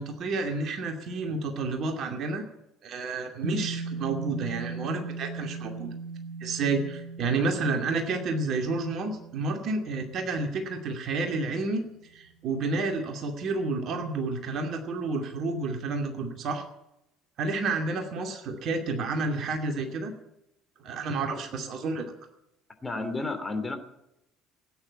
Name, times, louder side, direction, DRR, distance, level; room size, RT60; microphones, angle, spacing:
voice 1, 0.0-2.4 2.8-5.9 6.4-11.8 12.1-16.6 17.4-20.1 20.8-22.1, right 3 dB, 50° right, 4 dB, 2.5 m, -30 dB
sound 1, 3.4-11.9, right 4 dB, 80° right, 3.4 m, -39 dB
voice 2, 22.8-23.8, left 3 dB, 15° left, 6 dB, 3.0 m, -32 dB
17.0 x 9.7 x 8.8 m, 0.84 s
figure-of-eight pair, 55°, 0 cm